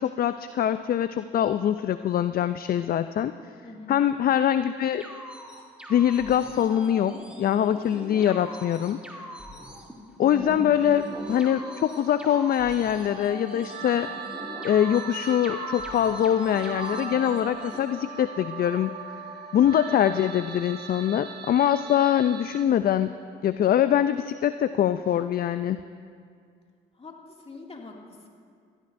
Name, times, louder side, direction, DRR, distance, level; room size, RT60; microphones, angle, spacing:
voice 1, 0.0-3.3 3.9-5.0 5.9-9.0 10.2-11.0 11.3-14.1 14.6-19.0 19.5-23.2 23.4-25.8, left 10 dB, 45° left, 12 dB, 0.4 m, -23 dB
voice 2, 3.6-4.0 10.4-10.7 26.9-28.3, left 3 dB, 30° left, 0 dB, 2.3 m, -44 dB
sound 1, 5.0-17.8, equal, 5° right, 2.4 m, -41 dB
sound 2, 10.6-22.6, right 4 dB, 50° right, 0.9 m, -39 dB
20.5 x 13.5 x 2.6 m, 2.2 s
supercardioid pair, 65°, 21 cm